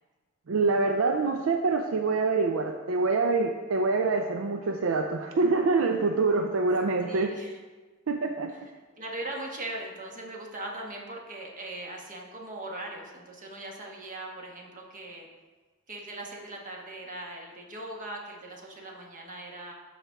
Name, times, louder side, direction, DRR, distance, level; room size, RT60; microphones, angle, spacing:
voice 1, 0.5-7.3 8.1-8.5, right 3 dB, 70° right, 5 dB, 0.5 m, -25 dB
voice 2, 7.0-7.6 8.5-8.7 9.0-15.3 15.9-19.7, right 2 dB, 40° right, 0 dB, 1.3 m, -40 dB
12.5 x 4.3 x 3.5 m, 1.3 s
head